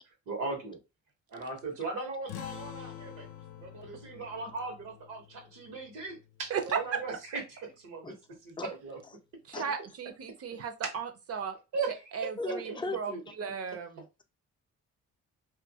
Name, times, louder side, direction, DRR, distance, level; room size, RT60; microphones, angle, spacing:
voice 1, 0.3-0.8 1.3-3.3 3.6-8.1 8.4-9.0 11.7-12.0 12.6-13.2, right 3 dB, 85° right, 1.1 m, -38 dB
sound 1, 2.3-7.3, left 10 dB, 80° left, 0.5 m, -48 dB
voice 2, 6.5-7.0 9.5-11.6 12.1-13.1 13.4-14.0, right 6 dB, 50° right, 0.6 m, -35 dB
voice 3, 12.4-13.3, left 3 dB, 15° left, 0.3 m, -38 dB
2.6 x 2.4 x 2.7 m
cardioid pair, 90°, 30 cm